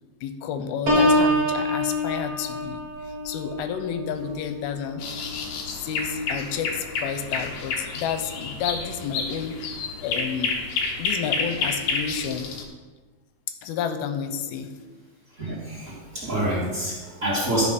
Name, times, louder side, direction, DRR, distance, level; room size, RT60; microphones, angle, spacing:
voice 1, 0.2-5.1 5.8-10.6 11.0-12.5 13.6-14.7, left 7 dB, 85° left, 8 dB, 2.6 m, -31 dB
Piano, 0.9-6.5 7.0-7.3, left 1 dB, 50° right, 1.1 m, -26 dB
sound 1, 5.0-12.6, left 4 dB, 65° left, 2.1 m, -30 dB
voice 2, 15.4-17.7, right 1 dB, 25° right, -8 dB, 2.3 m, -27 dB
12.5 x 5.1 x 5.3 m, 1.3 s
omnidirectional pair, 4.3 m